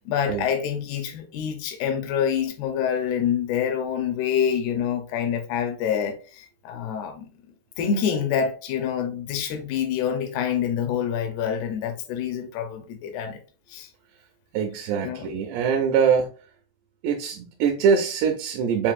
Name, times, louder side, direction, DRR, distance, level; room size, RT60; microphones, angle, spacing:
voice 1, 0.1-7.3 7.8-13.4 13.7-13.9 15.0-15.3, left 8 dB, 80° left, 2.6 m, -26 dB
voice 2, 14.5-16.3 17.0-18.9, right 6 dB, 80° right, 2.7 m, -23 dB
7.4 x 2.6 x 2.5 m
omnidirectional pair, 4.9 m